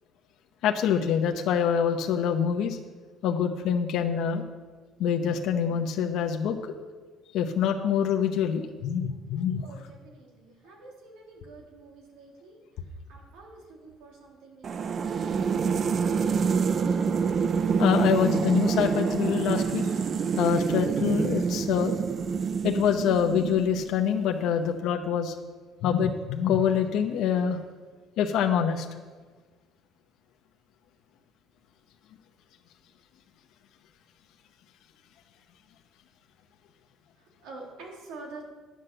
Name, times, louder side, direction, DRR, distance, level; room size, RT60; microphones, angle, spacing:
voice 1, 0.6-2.8 3.2-4.4 5.0-6.8 7.3-9.7 17.8-19.9 20.4-22.0 22.6-25.3 25.8-27.6 28.2-28.9, left 8 dB, 65° left, 3 dB, 0.8 m, -25 dB
voice 2, 9.6-12.6 13.1-15.4 37.2-38.5, right 3 dB, 85° right, 0 dB, 2.8 m, -47 dB
sound 1, 14.6-24.0, right 6 dB, 35° right, 0.4 m, -27 dB
10.5 x 7.8 x 6.6 m, 1.4 s
cardioid pair, 160°, 0 cm